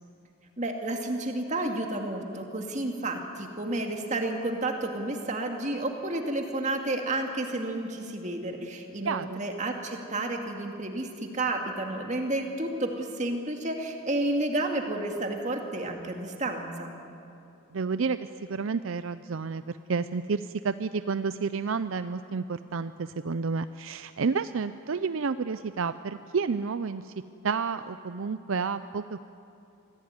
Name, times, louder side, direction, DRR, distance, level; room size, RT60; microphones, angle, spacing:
voice 1, 0.6-16.9, right 2 dB, 35° right, 3 dB, 2.3 m, -31 dB
voice 2, 9.0-9.5 17.7-27.1 27.4-29.3, right 5 dB, 70° right, 12 dB, 0.5 m, -30 dB
24.5 x 16.5 x 9.6 m, 2.7 s
head